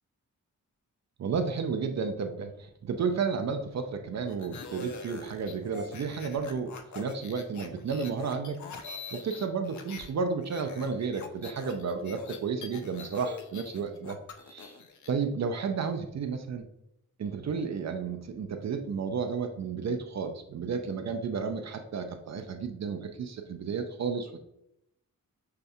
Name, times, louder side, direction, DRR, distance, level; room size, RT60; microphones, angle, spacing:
voice 1, 1.2-8.6 9.1-14.2 14.5-14.8 15.1-16.7 17.2-24.4, right 5 dB, 55° right, 6 dB, 0.4 m, -32 dB
sound 1, 4.3-10.1 10.4-15.1, left 5 dB, 60° left, 0.5 m, -44 dB
6.5 x 2.2 x 2.6 m, 0.82 s
wide cardioid pair, 100°, 33 cm